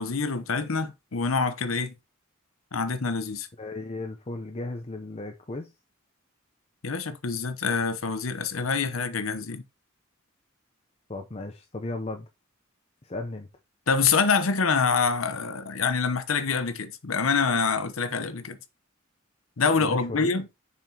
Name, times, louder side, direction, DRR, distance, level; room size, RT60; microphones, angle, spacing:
voice 1, 0.0-1.9 2.7-3.5 6.8-9.6 13.9-18.6 19.6-20.5, left 5 dB, 80° left, 0.9 m, -26 dB
voice 2, 3.6-5.7 11.1-12.3 13.0-13.5 19.6-20.4, left 2 dB, 30° left, 0.7 m, -35 dB
7.3 x 5.8 x 2.9 m
head